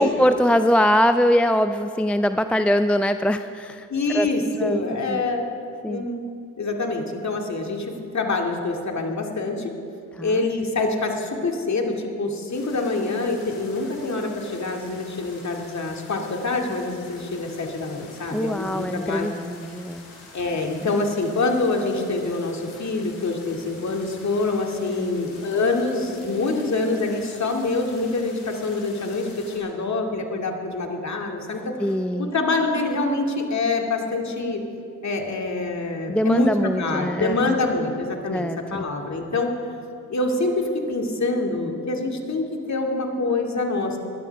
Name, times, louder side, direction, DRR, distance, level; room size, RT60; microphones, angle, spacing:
voice 1, 0.0-3.9 4.1-4.3 4.6-5.2 5.8-6.1 10.2-10.4 18.3-20.0 24.8-25.1 31.8-32.3 36.1-37.6 38.3-38.8, equal, 5° left, 10 dB, 0.4 m, -22 dB
voice 2, 3.9-5.5 5.9-6.2 6.6-7.8 8.1-9.6 10.2-19.3 20.3-29.3 29.5-31.7 32.2-34.6 35.0-38.4 38.7-39.5 40.1-40.5 40.9-43.9, left 3 dB, 40° left, 2 dB, 2.3 m, -25 dB
sound 1, 12.5-29.6, left 3 dB, 90° left, 2.8 m, -47 dB
20.5 x 13.0 x 3.5 m, 2.4 s
hypercardioid pair, 50°, 43 cm